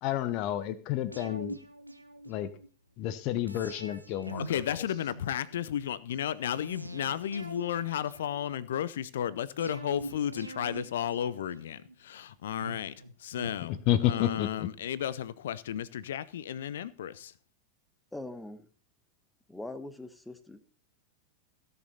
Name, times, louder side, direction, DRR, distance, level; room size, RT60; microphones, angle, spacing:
voice 1, 0.0-1.6 2.3-2.5 3.0-4.4 13.6-14.7, left 12 dB, 40° left, 1.1 m, -30 dB
sound 1, 1.1-2.7 3.5-5.6 6.5-8.7 9.6-12.0 12.6-14.3 14.6-14.7, right 1 dB, 85° right, 1.1 m, -44 dB
voice 2, 4.5-12.9 13.2-13.8 14.0-17.3, left 10 dB, 60° left, 0.7 m, -33 dB
voice 3, 18.1-18.7 19.5-20.6, left 2 dB, 5° left, 1.2 m, -42 dB
16.5 x 6.8 x 4.1 m
figure-of-eight pair, 90°, 0 cm